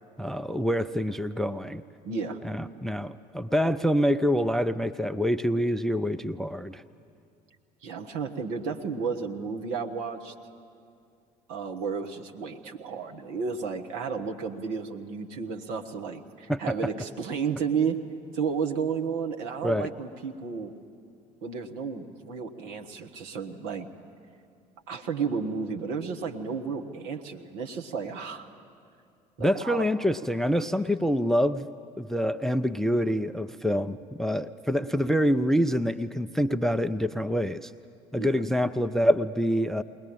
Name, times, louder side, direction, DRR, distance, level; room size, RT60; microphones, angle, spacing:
voice 1, 0.2-1.8 2.4-6.8 16.5-16.8 19.6-19.9 29.4-31.7 32.0-37.7 38.1-39.8, equal, ahead, 12 dB, 0.5 m, -26 dB
voice 2, 2.0-2.4 7.8-10.3 11.5-18.0 18.3-20.7 21.4-23.9 24.9-28.5 29.4-29.9 38.2-38.4, right 5 dB, 60° right, 5 dB, 1.4 m, -32 dB
21.5 x 19.5 x 8.8 m, 2.3 s
figure-of-eight pair, 60°, 21 cm